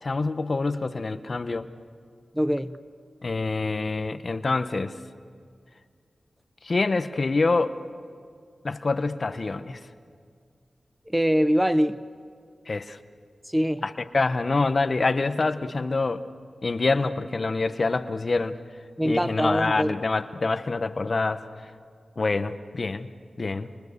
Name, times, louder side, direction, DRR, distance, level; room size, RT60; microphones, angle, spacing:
voice 1, 0.0-1.7 3.2-4.9 6.6-7.8 8.6-9.8 12.7-13.0 13.8-16.2 16.6-18.6 19.0-21.4 22.2-23.1 23.4-23.7, left 3 dB, 55° left, 10 dB, 1.1 m, -26 dB
voice 2, 2.3-2.8 11.1-12.0 13.5-13.8 19.0-20.0, equal, 5° right, 11 dB, 0.9 m, -23 dB
30.0 x 25.5 x 6.9 m, 2.2 s
cardioid pair, 50°, 0 cm